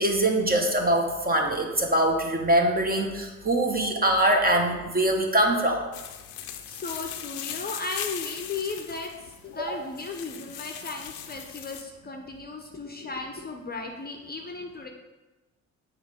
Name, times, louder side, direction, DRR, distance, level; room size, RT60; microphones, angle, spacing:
voice 1, 0.0-5.8, right 1 dB, 20° right, 2 dB, 1.1 m, -23 dB
sound 1, 5.9-11.8, left 10 dB, 60° left, 0.7 m, -39 dB
voice 2, 6.3-14.9, left 3 dB, 25° left, 3 dB, 0.8 m, -36 dB
7.9 x 3.2 x 5.1 m, 1.1 s
figure-of-eight pair, 50°, 41 cm